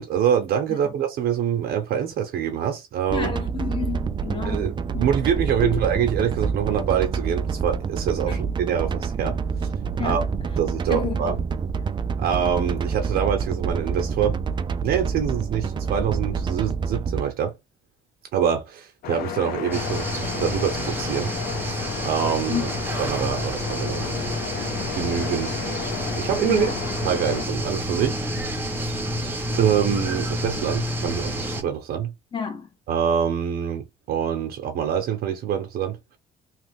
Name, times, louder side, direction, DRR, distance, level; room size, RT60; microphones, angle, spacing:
voice 1, 0.0-3.3 4.4-4.7 5.0-9.4 10.0-10.2 10.6-11.4 12.2-14.4 14.8-17.5 18.3-21.3 21.6-22.7 23.0-24.1 24.9-25.6 26.2-26.7 27.0-28.5 29.5-32.1 32.9-36.0, right 8 dB, 65° right, 0.8 m, -25 dB
voice 2, 3.1-5.0 5.6-5.7 8.2-8.4 10.0-10.2 10.9-11.3 22.5-22.7 26.4-26.8 32.3-32.7, left 6 dB, 30° left, 1.3 m, -30 dB
sound 1, 3.1-17.2, right 5 dB, 30° right, 0.4 m, -27 dB
sound 2, 19.0-27.5, left 10 dB, 65° left, 0.5 m, -33 dB
sound 3, 19.7-31.6, equal, 10° right, 0.9 m, -29 dB
3.0 x 2.4 x 3.5 m
cardioid pair, 110°, 17 cm